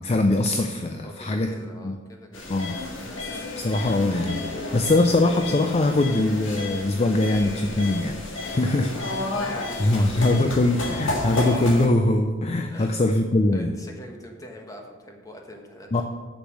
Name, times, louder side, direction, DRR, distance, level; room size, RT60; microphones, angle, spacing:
voice 1, 0.0-1.5 1.8-1.9 2.5-2.8 3.6-8.9 9.8-13.7 15.9-16.0, left 2 dB, 35° left, 6 dB, 0.4 m, -22 dB
voice 2, 1.0-2.6 8.6-10.8 12.7-13.0 13.5-16.0, equal, 20° left, 2 dB, 1.2 m, -43 dB
sound 1, 2.3-11.9, left 2 dB, 80° left, 1.8 m, -31 dB
8.2 x 6.7 x 6.1 m, 1.5 s
head